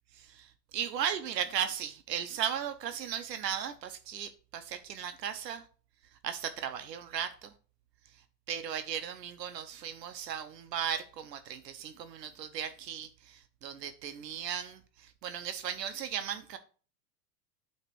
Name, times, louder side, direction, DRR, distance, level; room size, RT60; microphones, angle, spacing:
voice 1, 0.2-5.6 6.2-7.5 8.5-16.6, right 9 dB, 80° right, 0.8 m, -36 dB
8.8 x 3.2 x 4.6 m
hypercardioid pair, 100°, 50 cm